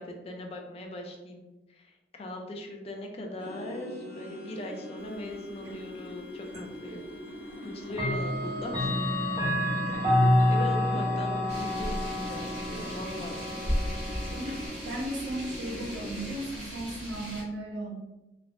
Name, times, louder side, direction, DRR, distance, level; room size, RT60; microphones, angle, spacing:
voice 1, 0.0-1.4 1.7-7.0 7.6-8.9 9.9-13.8, left 1 dB, 35° left, 2 dB, 0.3 m, -40 dB
sound 1, 3.4-16.3, left 1 dB, 75° left, 0.7 m, -43 dB
Clock, 6.5-6.6 7.9-14.7, left 1 dB, 20° right, 0.7 m, -28 dB
sound 2, 11.5-17.4, equal, 40° right, 1.1 m, -36 dB
voice 2, 14.8-18.0, right 1 dB, 75° right, -2 dB, 0.8 m, -36 dB
3.2 x 2.0 x 2.4 m, 1.1 s
head